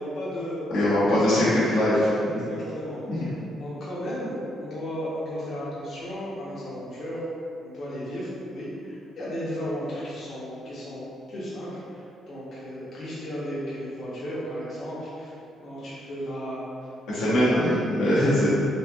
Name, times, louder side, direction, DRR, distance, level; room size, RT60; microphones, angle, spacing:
voice 1, 0.0-0.6 1.0-1.6 2.2-7.2 7.6-17.7, equal, 55° left, -9 dB, 0.9 m, -35 dB
voice 2, 0.7-2.4 3.1-3.2 17.1-18.5, left 1 dB, 90° left, -11 dB, 1.1 m, -22 dB
4.1 x 2.5 x 2.3 m, 2.6 s
cardioid pair, 85°, 0 cm